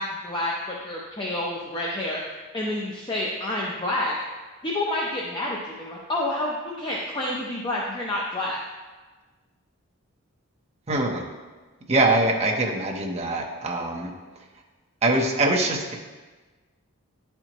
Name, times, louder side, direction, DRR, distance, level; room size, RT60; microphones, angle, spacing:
voice 1, 0.0-2.2 2.5-4.2 4.6-8.6, left 1 dB, 20° left, -4 dB, 0.6 m, -29 dB
voice 2, 10.9-11.3 11.9-14.1 15.0-15.9, right 2 dB, 30° right, 1 dB, 0.8 m, -23 dB
10.0 x 4.4 x 3.0 m, 1.3 s
head